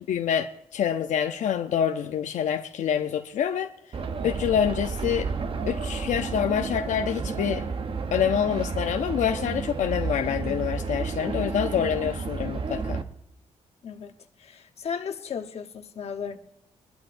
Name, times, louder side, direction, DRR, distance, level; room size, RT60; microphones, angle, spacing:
voice 1, 0.0-3.7 4.2-5.3 5.7-7.6 8.1-13.0, left 8 dB, 90° left, 0.6 m, -26 dB
sound 1, 3.9-13.0, right 4 dB, 45° right, 0.9 m, -31 dB
voice 2, 14.4-16.4, left 6 dB, 55° left, 1.1 m, -35 dB
23.0 x 11.5 x 2.6 m
wide cardioid pair, 125°, 12 cm